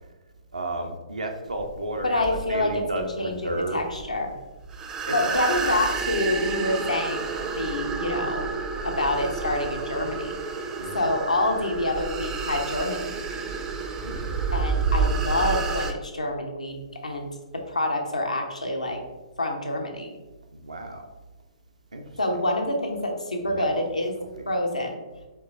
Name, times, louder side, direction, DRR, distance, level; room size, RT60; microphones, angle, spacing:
voice 1, 0.5-3.8 5.1-5.4 10.8-11.0 14.0-14.3 20.6-21.1 21.9-22.0 23.4-23.8 24.4-24.5, right 1 dB, 85° right, 4 dB, 0.7 m, -32 dB
sound 1, 1.5-15.9, right 4 dB, 15° right, 0.4 m, -30 dB
voice 2, 2.0-4.3 5.1-8.4 8.8-10.3 10.9-13.2 14.5-16.8 17.0-17.3 17.7-19.0 19.4-20.1 22.2-24.2 24.5-25.0, left 1 dB, 90° left, 2 dB, 0.8 m, -27 dB
4.7 x 2.7 x 3.1 m, 1.1 s
figure-of-eight pair, 125°, 4 cm